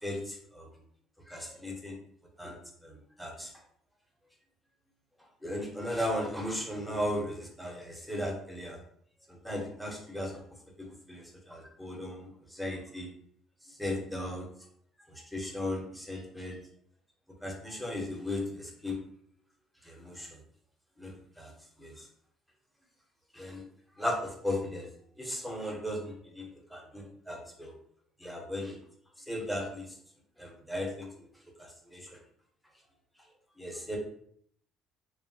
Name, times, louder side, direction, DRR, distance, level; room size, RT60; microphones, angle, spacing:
voice 1, 0.0-0.7 1.3-2.0 2.4-3.5 5.4-8.8 9.3-10.4 10.8-13.1 13.6-14.5 15.1-16.6 17.4-19.0 19.8-20.4 21.0-21.5 21.8-22.1 23.3-23.6 24.0-24.9 25.2-27.7 28.2-28.8 29.3-30.0 30.4-31.1 31.6-32.2 33.6-34.0, left 1 dB, ahead, 0 dB, 0.7 m, -36 dB
3.0 x 2.3 x 2.6 m, 0.64 s
cardioid pair, 130°, 0 cm